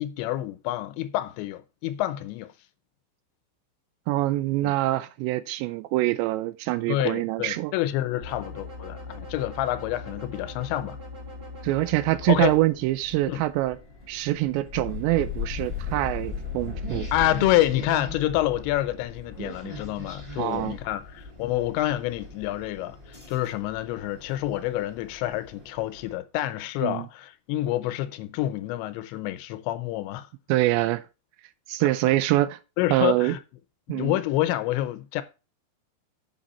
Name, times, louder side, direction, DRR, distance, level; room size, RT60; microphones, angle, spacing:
voice 1, 0.0-2.5 4.6-4.7 6.9-11.0 12.3-12.5 13.3-13.4 17.1-30.3 31.8-31.9 32.8-33.4 33.9-35.2, left 14 dB, 85° left, 2.9 m, -28 dB
voice 2, 4.1-7.7 11.6-13.8 14.1-17.1 20.4-20.8 26.8-27.1 30.5-31.0 31.7-32.6 32.9-33.3 33.9-34.2, right 17 dB, 85° right, 2.8 m, -25 dB
sound 1, 8.2-12.6, left 3 dB, 45° right, 0.7 m, -40 dB
sound 2, 12.2-26.1, left 4 dB, 10° right, 1.3 m, -38 dB
8.1 x 5.9 x 4.2 m
omnidirectional pair, 5.2 m